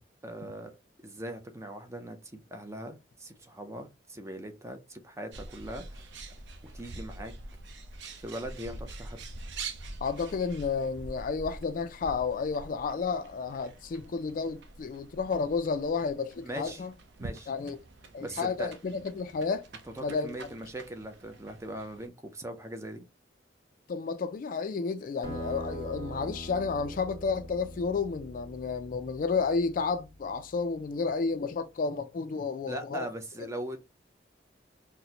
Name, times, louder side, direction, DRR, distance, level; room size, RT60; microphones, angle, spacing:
voice 1, 0.2-0.8 1.0-6.1 6.6-7.3 8.2-9.2 16.4-16.8 17.2-17.5 18.2-18.7 20.0-23.1 32.7-33.8, right 1 dB, 15° right, 0.5 m, -40 dB
Bird, 5.3-22.1, right 2 dB, 70° right, 0.6 m, -45 dB
voice 2, 10.0-16.9 17.5-17.8 18.1-19.6 20.0-20.4 23.9-33.1, left 4 dB, 45° left, 0.3 m, -31 dB
sound 1, 25.2-30.4, right 1 dB, 30° right, 2.0 m, -42 dB
4.1 x 2.1 x 2.8 m
head